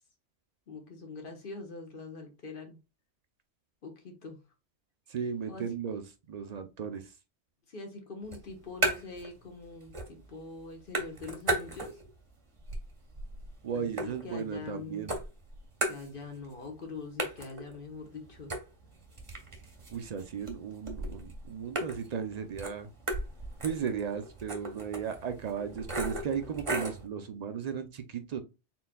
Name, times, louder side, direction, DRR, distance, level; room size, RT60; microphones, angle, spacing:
voice 1, 0.7-2.8 3.8-4.4 5.5-5.6 7.7-12.0 13.7-15.2 15.8-18.5, left 3 dB, 50° left, 1.3 m, -43 dB
voice 2, 5.1-7.1 13.6-15.2 19.9-22.9 23.6-28.4, right 7 dB, 55° right, 0.4 m, -36 dB
sound 1, 8.2-9.3 9.6-10.3 10.6-12.2 12.6-14.7 15.1-16.5 16.8-16.9 17.2-27.1, right 2 dB, 30° right, 0.8 m, -36 dB
4.3 x 3.9 x 2.2 m
omnidirectional pair, 1.2 m